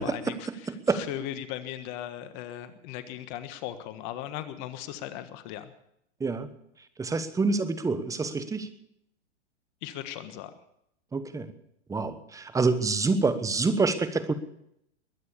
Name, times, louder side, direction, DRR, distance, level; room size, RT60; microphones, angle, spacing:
voice 1, 0.0-5.7 9.8-10.5, left 10 dB, 40° left, 11 dB, 1.5 m, -38 dB
voice 2, 0.7-1.0 6.2-6.5 7.0-8.7 11.1-11.5 11.9-14.3, right 3 dB, 10° right, 11 dB, 1.2 m, -27 dB
21.5 x 9.6 x 6.8 m, 0.76 s
hypercardioid pair, 125°, 35 cm